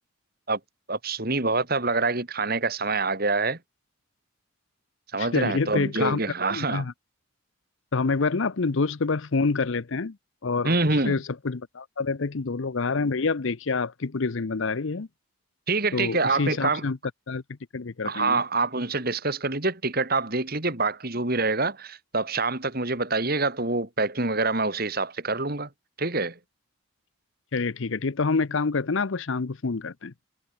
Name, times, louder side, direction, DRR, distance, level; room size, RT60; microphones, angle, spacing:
voice 1, 0.9-3.6 5.1-6.9 10.6-11.2 15.7-16.8 18.0-25.7 26.0-26.4, right 3 dB, 45° right, 2.6 m, -26 dB
voice 2, 5.2-6.2 6.5-6.9 7.9-10.2 10.4-10.8 11.0-15.1 15.9-17.0 17.3-17.4 17.7-18.4 27.5-30.1, left 4 dB, 65° left, 0.7 m, -27 dB
head